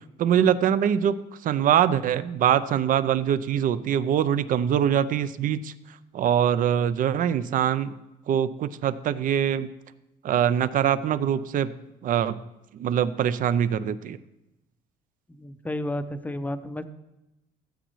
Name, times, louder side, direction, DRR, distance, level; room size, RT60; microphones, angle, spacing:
voice 1, 0.2-1.2 1.4-5.7 6.1-8.0 8.3-9.7 10.2-11.7 12.0-12.4 12.7-14.2, right 9 dB, 55° right, 15 dB, 0.5 m, -23 dB
voice 2, 15.3-16.8, left 1 dB, 10° left, 10 dB, 0.6 m, -32 dB
14.0 x 8.0 x 3.1 m, 0.95 s
cardioid pair, 110°, 17 cm